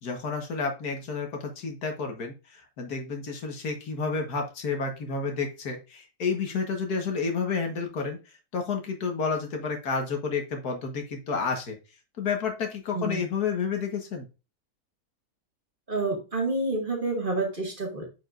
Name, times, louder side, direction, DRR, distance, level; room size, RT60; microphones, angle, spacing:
voice 1, 0.0-11.8 12.2-14.3, left 5 dB, 85° left, 4 dB, 2.0 m, -30 dB
voice 2, 15.9-18.0, right 2 dB, 35° right, 0 dB, 2.4 m, -28 dB
9.1 x 5.3 x 2.6 m, 0.29 s
omnidirectional pair, 1.6 m